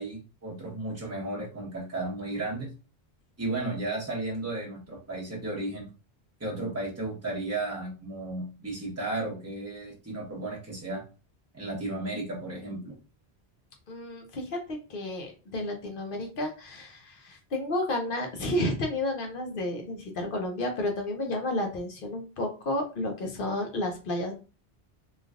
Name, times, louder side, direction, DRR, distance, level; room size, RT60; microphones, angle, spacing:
voice 1, 0.0-2.7 3.4-5.9 6.4-11.0 11.5-12.9, right 2 dB, 15° right, -3 dB, 1.0 m, -34 dB
voice 2, 13.9-24.3, left 1 dB, 60° left, 3 dB, 0.8 m, -31 dB
3.2 x 2.4 x 2.3 m, 0.32 s
omnidirectional pair, 1.1 m